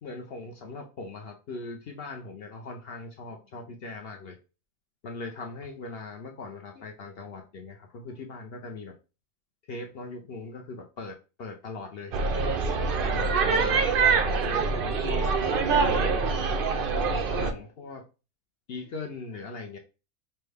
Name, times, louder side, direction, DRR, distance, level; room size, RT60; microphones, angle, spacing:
voice 1, 0.0-4.4 5.0-8.9 9.7-12.2 13.1-13.7 14.4-15.3 15.8-16.4 16.7-18.0 18.7-19.8, left 3 dB, 65° left, 3 dB, 0.6 m, -40 dB
sound 1, 12.1-17.5, right 4 dB, 85° right, 0.4 m, -25 dB
5.5 x 2.2 x 3.3 m, 0.32 s
omnidirectional pair, 1.6 m